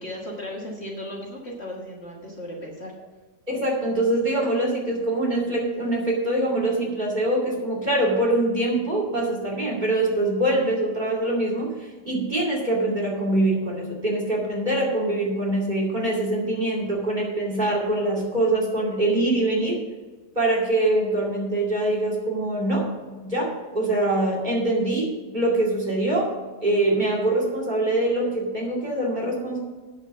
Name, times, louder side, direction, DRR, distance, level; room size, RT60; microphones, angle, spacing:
voice 1, 0.0-2.9, left 1 dB, 40° left, -2 dB, 1.7 m, -36 dB
voice 2, 3.5-11.7 12.0-19.8 20.4-22.8 23.2-23.5 23.7-26.3 26.6-29.6, right 1 dB, 30° right, -2 dB, 2.6 m, -24 dB
8.3 x 7.2 x 6.8 m, 1.3 s
omnidirectional pair, 1.7 m